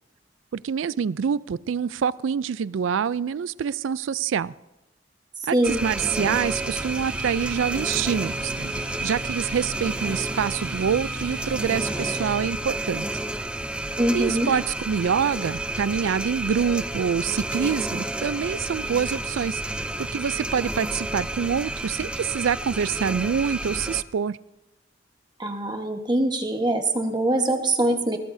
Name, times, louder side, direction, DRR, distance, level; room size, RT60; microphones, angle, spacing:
voice 1, 0.5-4.5 5.5-13.1 14.1-19.6 20.0-24.4, right 7 dB, 90° right, 18 dB, 0.4 m, -26 dB
voice 2, 5.5-5.8 14.0-14.5 25.4-28.2, right 1 dB, 25° right, 4 dB, 1.3 m, -23 dB
sound 1, 5.6-24.0, right 1 dB, 5° right, 0.5 m, -31 dB
sound 2, 6.3-12.4, right 2 dB, 60° right, 6.3 m, -38 dB
21.0 x 18.5 x 2.7 m, 1.0 s
head